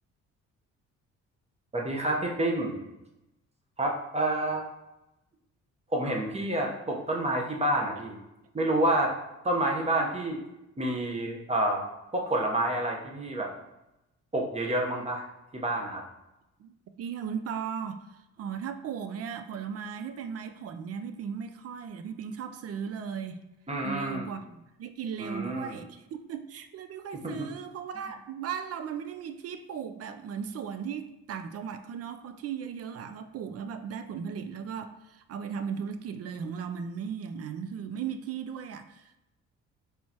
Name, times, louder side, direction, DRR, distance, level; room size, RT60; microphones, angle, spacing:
voice 1, 1.7-2.8 3.8-4.6 5.9-8.2 8.5-9.1 9.4-10.4 10.8-11.8 12.1-13.5 14.3-15.2 15.5-16.0 23.7-24.3 25.2-25.8 27.2-27.5 28.1-28.2, right 1 dB, 20° right, 0 dB, 0.9 m, -28 dB
voice 2, 16.6-23.4 23.8-39.2, right 7 dB, 55° right, 9 dB, 0.4 m, -37 dB
4.5 x 3.4 x 2.8 m, 0.92 s
cardioid pair, 90°, 30 cm